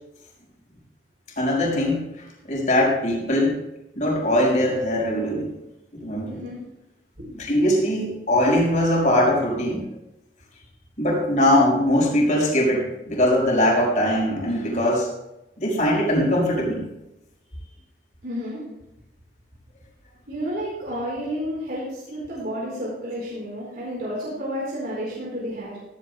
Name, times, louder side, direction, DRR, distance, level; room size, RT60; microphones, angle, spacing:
voice 1, 1.4-2.1 2.4-3.6 3.9-5.5 5.9-6.4 7.3-9.8 11.0-15.1 15.6-16.8, left 1 dB, 45° left, -2 dB, 5.0 m, -21 dB
voice 2, 6.2-6.6 7.2-7.3 18.2-18.6 20.3-25.8, equal, 60° right, -6 dB, 4.4 m, -31 dB
16.0 x 15.5 x 2.2 m, 0.92 s
head